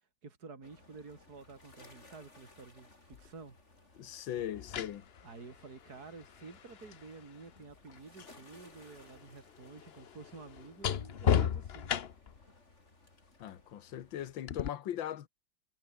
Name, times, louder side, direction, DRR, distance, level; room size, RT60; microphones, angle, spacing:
voice 1, 0.0-3.6 5.2-12.2, right 4 dB, 50° right, 3.8 m, -51 dB
sound 1, 0.6-14.4, left 2 dB, 35° left, 4.7 m, -61 dB
sound 2, 3.1-3.3 4.4-8.4 8.7-12.4 14.5-14.7, left 8 dB, 55° left, 0.7 m, -36 dB
voice 2, 4.0-5.1 13.4-15.3, left 11 dB, 80° left, 1.9 m, -39 dB
omnidirectional pair, 2.1 m